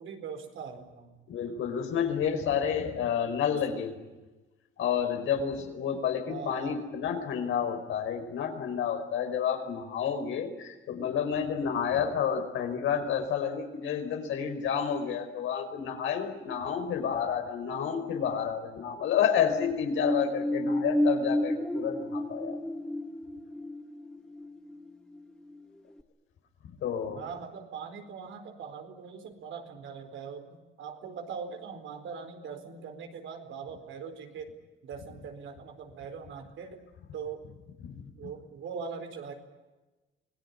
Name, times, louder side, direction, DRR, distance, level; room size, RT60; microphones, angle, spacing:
voice 1, 0.0-1.2 6.3-6.8 16.6-16.7 17.7-18.5 27.1-34.5 34.8-36.8 37.1-37.5 38.1-39.3, right 6 dB, 75° right, 6 dB, 4.4 m, -41 dB
voice 2, 1.3-4.0 4.8-22.6 26.6-27.2 37.8-38.0, left 7 dB, 80° left, 5 dB, 4.9 m, -30 dB
sound 1, 19.4-25.6 26.0-26.1, equal, 5° left, 1.7 m, -32 dB
26.0 x 18.0 x 9.9 m, 1.1 s
cardioid pair, 90°, 20 cm